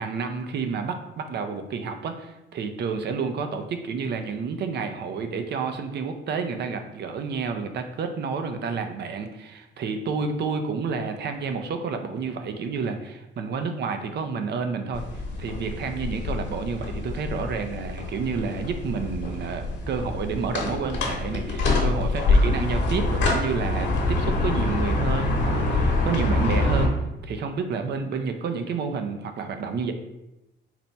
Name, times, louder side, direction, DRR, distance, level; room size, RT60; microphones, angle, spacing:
voice 1, 0.0-15.0 15.4-26.9 27.2-29.9, right 5 dB, 60° right, 6 dB, 0.5 m, -30 dB
sound 1, 14.9-26.9, left 2 dB, 65° left, 1.0 m, -25 dB
4.2 x 2.2 x 4.0 m, 0.94 s
cardioid pair, 90°, 20 cm